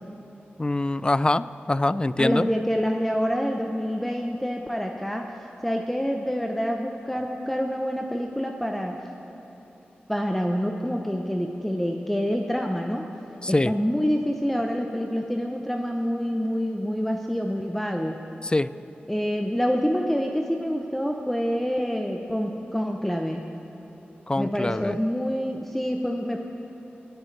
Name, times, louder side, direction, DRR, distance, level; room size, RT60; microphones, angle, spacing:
voice 1, 0.6-2.5 13.4-13.7 18.4-18.7 24.3-25.0, left 2 dB, 25° left, 16 dB, 0.4 m, -24 dB
voice 2, 2.2-5.3 5.6-9.0 10.1-13.1 13.5-18.2 19.1-23.5 24.4-26.4, equal, 5° left, 2 dB, 0.8 m, -27 dB
25.5 x 8.9 x 3.4 m, 2.9 s
cardioid pair, 45°, 4 cm